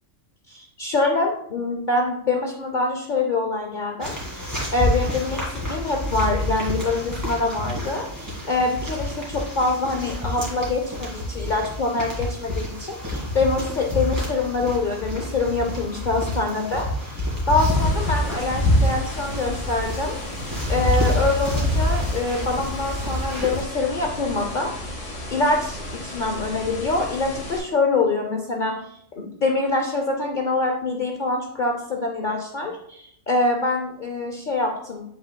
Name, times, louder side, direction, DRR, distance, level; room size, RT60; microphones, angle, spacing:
voice 1, 0.5-20.2 20.7-24.7 25.3-28.8 29.2-35.0, left 3 dB, 45° left, 1 dB, 0.7 m, -25 dB
sound 1, 4.0-23.6, left 1 dB, 15° right, 2.0 m, -27 dB
sound 2, 17.6-27.6, left 1 dB, 75° left, 1.8 m, -35 dB
8.0 x 5.6 x 2.3 m, 0.72 s
omnidirectional pair, 1.3 m